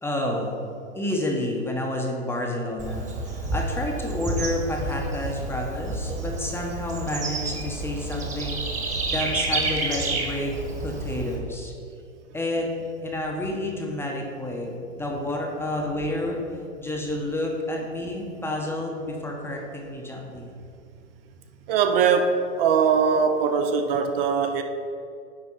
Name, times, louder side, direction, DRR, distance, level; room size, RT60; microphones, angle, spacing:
voice 1, 0.0-0.7 0.9-10.5 10.8-11.7 12.3-12.7 13.0-16.4 16.8-20.5, left 1 dB, 5° left, 0.8 m, -30 dB
Bird / Insect, 2.8-11.4, right 2 dB, 20° right, 1.3 m, -30 dB
voice 2, 21.7-24.6, right 6 dB, 50° right, 0.7 m, -21 dB
9.7 x 3.4 x 5.5 m
hypercardioid pair, 125°, 37 cm